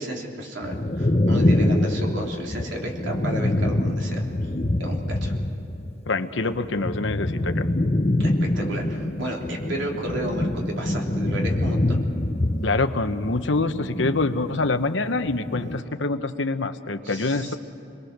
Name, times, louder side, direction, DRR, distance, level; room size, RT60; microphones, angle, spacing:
voice 1, 0.0-4.2 4.8-5.3 8.2-12.0 17.0-17.6, right 1 dB, 80° right, -1 dB, 3.5 m, -32 dB
sound 1, 0.6-5.9 6.2-14.8 15.1-15.8, left 1 dB, 30° left, 0.9 m, -25 dB
voice 2, 6.1-7.7 12.6-17.5, left 3 dB, 75° left, 9 dB, 1.0 m, -25 dB
28.5 x 22.5 x 6.7 m, 2.8 s
head